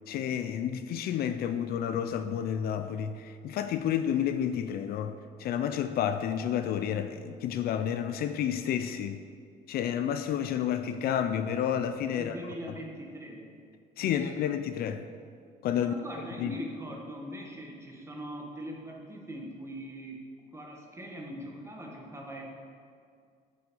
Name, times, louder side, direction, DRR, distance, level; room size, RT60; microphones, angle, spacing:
voice 1, 0.1-9.2 9.7-12.4 14.0-15.1 15.6-15.9 16.4-16.5, left 9 dB, 65° left, 0.4 m, -30 dB
voice 2, 12.1-13.5 14.0-14.3 15.7-20.2 20.5-22.4, equal, 15° right, 1.4 m, -41 dB
7.9 x 5.1 x 5.3 m
cardioid pair, 110°, 17 cm